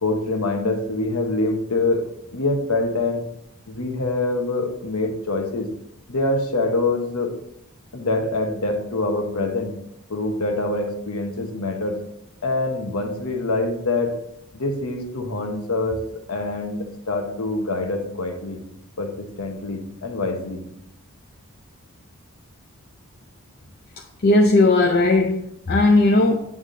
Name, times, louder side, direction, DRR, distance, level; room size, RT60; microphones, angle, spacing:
voice 1, 0.0-2.0 2.3-3.2 3.7-5.7 6.1-7.3 7.9-9.7 10.1-12.0 12.4-14.1 14.5-16.0 16.3-18.6 19.0-20.6, left 2 dB, 80° left, 4 dB, 1.0 m, -25 dB
voice 2, 24.2-26.4, left 2 dB, 45° left, 0 dB, 0.5 m, -17 dB
8.4 x 3.4 x 3.8 m, 0.78 s
head